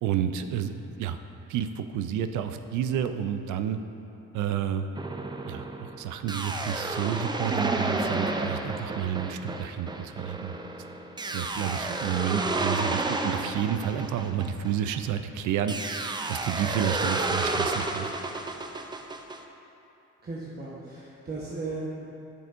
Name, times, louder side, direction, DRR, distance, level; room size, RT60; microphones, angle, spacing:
voice 1, 0.0-1.2 1.5-3.8 4.3-4.9 5.5-5.7 6.0-10.5 11.3-18.1, right 9 dB, 80° right, 9 dB, 0.5 m, -30 dB
sound 1, 5.0-15.1 15.7-19.4, right 2 dB, 15° right, 0.4 m, -31 dB
voice 2, 20.2-22.1, right 3 dB, 30° right, -6 dB, 1.0 m, -36 dB
8.0 x 6.9 x 2.5 m, 2.9 s
cardioid pair, 90°, 30 cm